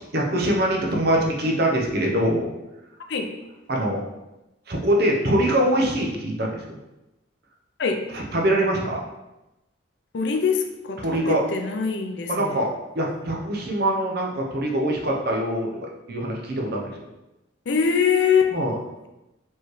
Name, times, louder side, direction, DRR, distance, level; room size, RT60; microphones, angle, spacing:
voice 1, 0.1-2.5 3.7-4.0 4.7-6.6 8.1-9.0 11.0-11.4 12.3-12.7 12.9-17.1 18.5-18.8, right 1 dB, 55° right, -1 dB, 0.7 m, -23 dB
voice 2, 10.1-12.6 17.7-18.5, left 6 dB, 65° left, 3 dB, 0.5 m, -23 dB
4.5 x 3.1 x 3.2 m, 0.97 s
head